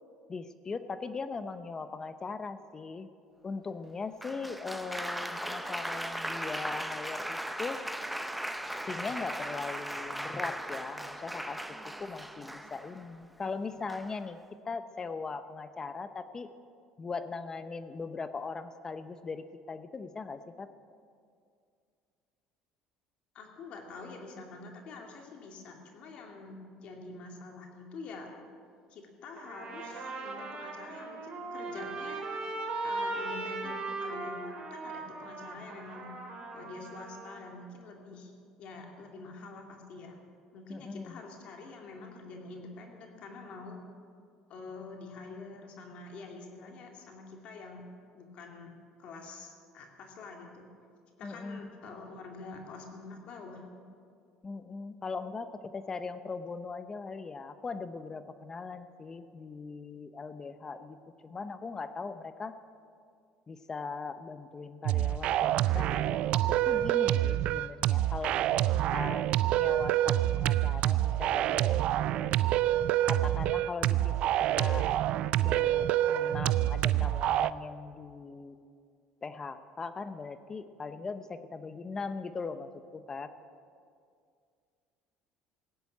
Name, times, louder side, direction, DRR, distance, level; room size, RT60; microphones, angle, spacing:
voice 1, 0.3-3.1 3.4-7.8 8.8-14.4 14.6-16.5 17.0-20.7 40.7-41.2 51.2-51.6 54.4-61.0 61.2-62.6 63.5-69.2 69.6-72.4 73.1-74.2 74.6-74.9 75.4-78.6 79.2-83.3, left 4 dB, 25° left, 11 dB, 0.8 m, -40 dB
Applause, 4.2-13.1 13.9-14.3, right 1 dB, 5° right, 0.8 m, -38 dB
voice 2, 23.3-28.3 28.9-32.3 32.8-36.1 36.5-38.3 38.6-40.2 40.5-43.8 44.5-47.9 48.1-48.7 49.0-50.7 51.2-53.8, left 3 dB, 55° left, 2 dB, 2.4 m, -46 dB
Trumpet, 29.4-37.4, right 3 dB, 40° right, 3.7 m, -38 dB
sound 1, 64.9-77.5, right 13 dB, 60° right, 0.4 m, -27 dB
16.0 x 10.0 x 8.4 m, 2.3 s
supercardioid pair, 100°, 2 cm